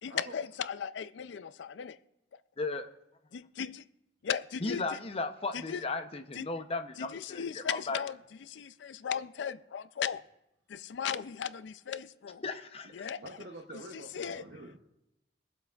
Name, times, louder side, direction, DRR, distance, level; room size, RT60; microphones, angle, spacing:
voice 1, 0.0-2.0 3.3-3.8 4.2-5.0 5.5-5.8 6.3-6.5 7.0-10.2 10.7-12.4 12.9-13.2 13.9-14.4, left 7 dB, 85° left, 0.4 m, -37 dB
voice 2, 2.6-2.9 4.6-8.0 12.4-13.1, left 3 dB, 35° left, 0.6 m, -36 dB
voice 3, 13.2-14.8, right 2 dB, 75° right, 0.9 m, -47 dB
23.0 x 7.8 x 2.4 m
head